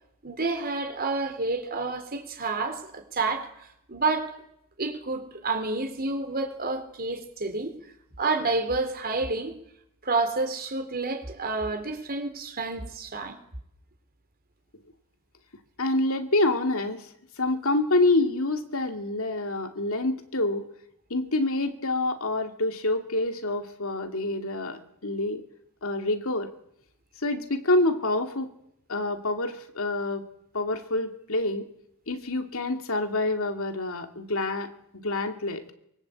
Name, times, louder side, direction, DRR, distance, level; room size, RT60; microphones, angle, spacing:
voice 1, 0.2-3.5 3.9-4.3 4.8-7.7 8.2-9.5 10.0-13.4, right 3 dB, 45° right, 7 dB, 3.7 m, -29 dB
voice 2, 15.8-17.1 17.4-20.6 21.1-25.4 25.8-26.5 27.2-28.5 28.9-30.2 30.5-31.7 32.1-34.7 35.0-35.6, left 2 dB, 65° left, 6 dB, 2.6 m, -27 dB
24.0 x 23.5 x 8.5 m, 0.77 s
head